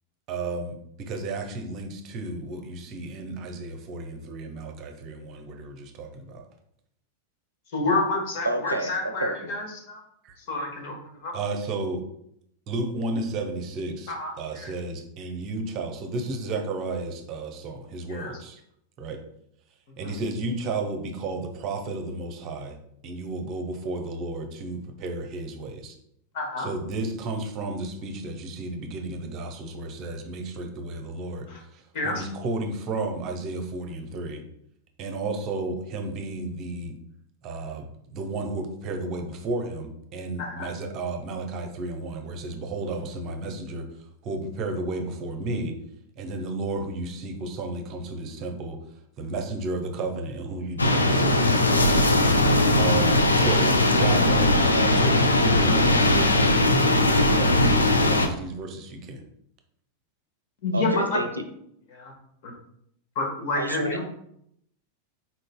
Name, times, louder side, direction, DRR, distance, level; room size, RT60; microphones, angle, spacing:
voice 1, 0.3-6.4 10.2-10.4 11.3-12.1 12.7-18.6 19.0-19.2 20.0-22.8 23.0-26.0 26.6-31.5 31.7-34.4 35.0-37.0 37.4-37.8 38.1-43.9 44.2-45.7 46.2-48.8 49.2-52.0 52.8-59.2, right 2 dB, 35° right, 4 dB, 0.6 m, -32 dB
voice 2, 7.7-10.0 10.4-11.3 14.1-14.7 18.1-18.3 20.0-20.1 26.3-26.7 31.5-31.6 31.9-32.2 40.4-40.7 60.6-61.2 61.9-62.1 62.4-62.5 63.1-64.0, left 2 dB, 50° left, 1 dB, 1.2 m, -29 dB
voice 3, 8.4-9.3 60.7-61.3 63.6-64.0, right 1 dB, 80° right, 6 dB, 0.5 m, -29 dB
sound 1, 50.8-58.3, left 1 dB, 80° left, 0.4 m, -20 dB
4.2 x 3.8 x 2.2 m, 0.72 s
figure-of-eight pair, 90°, 0 cm